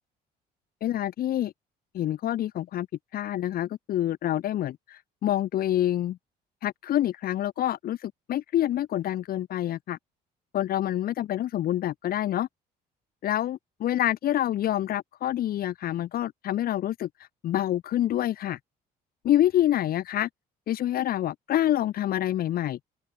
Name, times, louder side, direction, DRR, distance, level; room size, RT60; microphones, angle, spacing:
voice 1, 0.8-1.5 1.9-2.9 3.1-6.2 6.6-10.0 10.5-12.5 13.2-17.1 17.4-18.6 19.2-20.3 20.7-22.8, left 12 dB, 60° left, 1.6 m, -27 dB
open air
cardioid pair, 110°, 17 cm